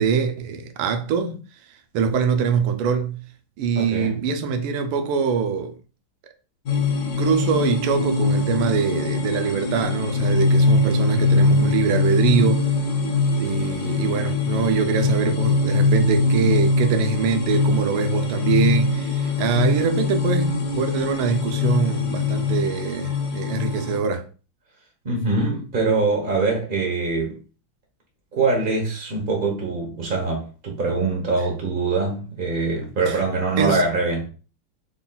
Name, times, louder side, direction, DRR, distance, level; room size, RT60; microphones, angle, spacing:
voice 1, 0.0-1.4 1.9-3.2 3.6-5.8 7.2-12.6 13.4-24.3 33.1-33.2 33.6-33.8, right 6 dB, 90° right, 1.5 m, -23 dB
voice 2, 3.8-4.2 25.0-27.4 28.3-34.3, right 3 dB, 65° right, 0.5 m, -23 dB
sound 1, 6.7-24.0, left 3 dB, 70° left, 0.9 m, -22 dB
3.8 x 2.2 x 3.8 m
omnidirectional pair, 2.4 m